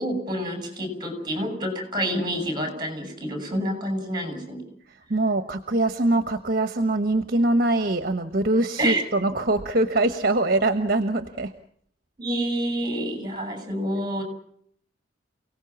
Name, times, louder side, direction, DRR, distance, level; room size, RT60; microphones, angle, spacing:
voice 1, 0.0-4.6 8.8-9.0 12.2-14.2, right 1 dB, 25° right, 7 dB, 7.1 m, -28 dB
voice 2, 5.1-11.5, right 2 dB, 50° right, 8 dB, 1.3 m, -23 dB
29.0 x 18.5 x 7.2 m, 0.66 s
head